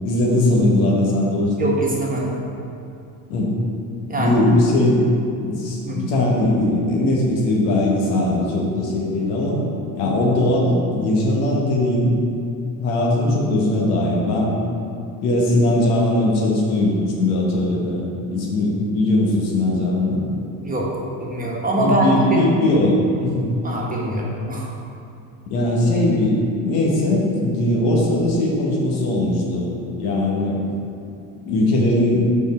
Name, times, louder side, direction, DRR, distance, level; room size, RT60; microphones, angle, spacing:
voice 1, 0.0-1.7 3.3-3.5 4.1-9.6 9.9-12.1 12.8-14.5 15.2-20.2 21.7-23.5 25.5-29.7 30.0-30.6 31.4-32.3, left 1 dB, 85° left, -3 dB, 1.3 m, -20 dB
voice 2, 1.6-2.4 4.1-4.4 5.9-6.0 20.6-20.9 21.2-22.4 23.6-24.7 25.9-26.1, right 1 dB, 20° right, -4 dB, 1.2 m, -23 dB
5.2 x 4.3 x 4.3 m, 2.5 s
supercardioid pair, 85°, 43 cm